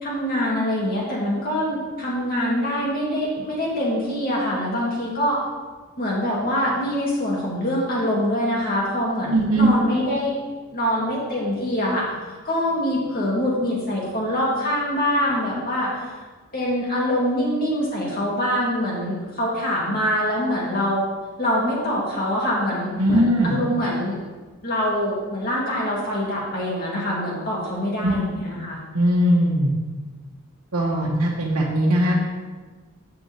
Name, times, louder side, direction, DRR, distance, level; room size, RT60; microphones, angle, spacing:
voice 1, 0.0-5.4 6.0-10.4 10.7-12.1 12.4-16.1 16.5-21.0 21.4-24.2 24.6-28.8, equal, 40° left, -5 dB, 2.4 m, -24 dB
voice 2, 9.3-9.7 23.0-23.5 28.0-28.1 28.9-29.7 30.7-32.1, right 1 dB, 80° right, -5 dB, 1.2 m, -19 dB
9.0 x 7.0 x 3.4 m, 1.3 s
head